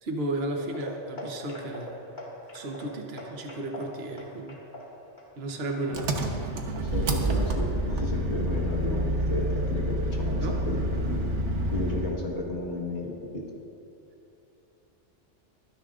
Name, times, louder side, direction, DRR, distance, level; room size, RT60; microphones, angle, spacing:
voice 1, 0.0-1.9 2.5-4.6 5.4-6.4 10.4-10.6, right 1 dB, 60° right, 2 dB, 1.2 m, -34 dB
sound 1, 0.6-7.2 7.5-7.8 8.2-8.3 8.7-8.8, equal, 40° left, 2.1 m, -43 dB
Engine, 5.9-12.2, right 1 dB, 85° right, 1.4 m, -28 dB
voice 2, 6.9-11.2 11.7-13.5, left 2 dB, 70° left, -2 dB, 1.9 m, -33 dB
24.5 x 10.0 x 2.5 m, 2.7 s
omnidirectional pair, 1.2 m